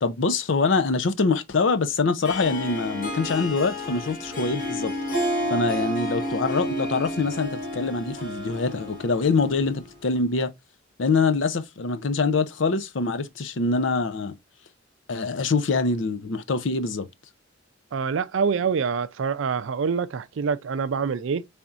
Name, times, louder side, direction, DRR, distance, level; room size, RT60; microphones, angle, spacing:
voice 1, 0.0-4.9 5.5-10.5 11.0-14.4 15.1-17.1, left 4 dB, 75° left, 0.6 m, -24 dB
Harp, 2.2-9.9, equal, 45° left, 1.8 m, -31 dB
voice 2, 17.9-21.5, right 6 dB, 80° right, 0.4 m, -26 dB
4.2 x 3.5 x 2.4 m
head